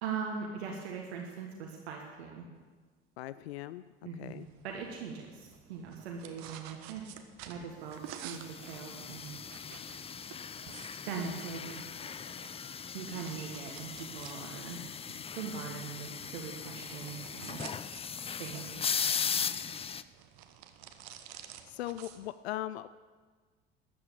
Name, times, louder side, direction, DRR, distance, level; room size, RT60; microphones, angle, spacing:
voice 1, 0.0-2.5 4.0-7.0 7.5-9.4 11.1-11.9 12.9-17.6 18.4-18.9, right 6 dB, 70° right, 1 dB, 1.6 m, -41 dB
voice 2, 3.2-3.9 4.2-4.5 21.7-22.9, left 14 dB, 75° left, 16 dB, 0.5 m, -39 dB
sound 1, 4.2-22.3, right 10 dB, 55° right, 1.2 m, -52 dB
sound 2, 8.4-20.0, left 7 dB, 20° left, 0.5 m, -38 dB
13.0 x 8.7 x 8.6 m, 1.4 s
figure-of-eight pair, 65°, 32 cm